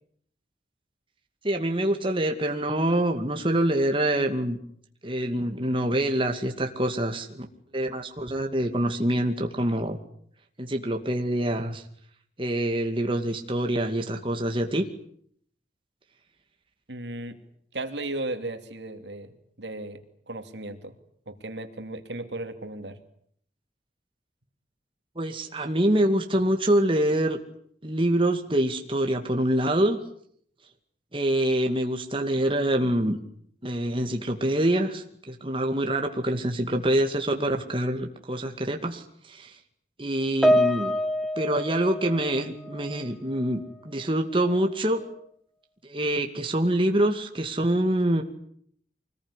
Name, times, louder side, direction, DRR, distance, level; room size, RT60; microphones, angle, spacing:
voice 1, 1.4-4.6 5.0-7.5 7.7-10.0 10.6-11.8 12.4-14.9 25.2-27.4 27.8-30.0 31.1-33.2 33.6-39.5 40.0-40.9 41.4-45.0 45.8-48.2, right 1 dB, 30° right, 4 dB, 2.4 m, -25 dB
voice 2, 16.9-17.4 17.7-19.3 19.6-20.0 20.3-21.0 21.3-23.0, right 2 dB, 80° right, 8 dB, 2.8 m, -35 dB
Piano, 40.4-43.1 43.3-43.7 44.4-44.6, equal, ahead, 1.2 m, -26 dB
25.0 x 20.0 x 10.0 m, 0.65 s
head